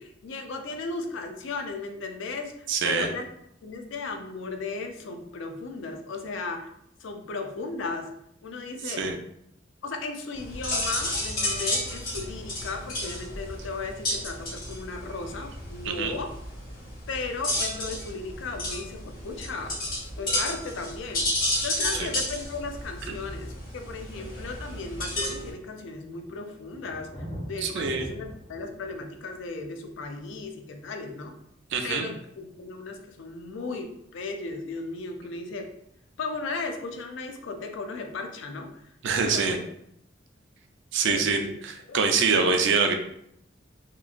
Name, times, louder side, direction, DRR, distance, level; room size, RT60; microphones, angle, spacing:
voice 1, 0.0-3.3 3.6-6.7 7.0-8.1 8.4-9.1 9.8-16.3 17.1-21.3 21.6-27.1 27.4-31.3 31.8-35.7 36.2-38.7 39.2-39.6 41.0-41.5 41.9-42.4, left 3 dB, 70° left, 5 dB, 0.4 m, -36 dB
voice 2, 2.7-3.1 8.8-9.1 15.8-16.1 27.6-28.1 31.7-32.1 39.0-39.6 40.9-42.9, right 5 dB, 65° right, 5 dB, 0.4 m, -25 dB
sound 1, 10.3-25.5, left 1 dB, 45° left, 1.1 m, -32 dB
Thunder, 24.8-31.5 33.2-33.3, equal, 30° left, 0.7 m, -45 dB
2.9 x 2.3 x 2.4 m, 0.74 s
head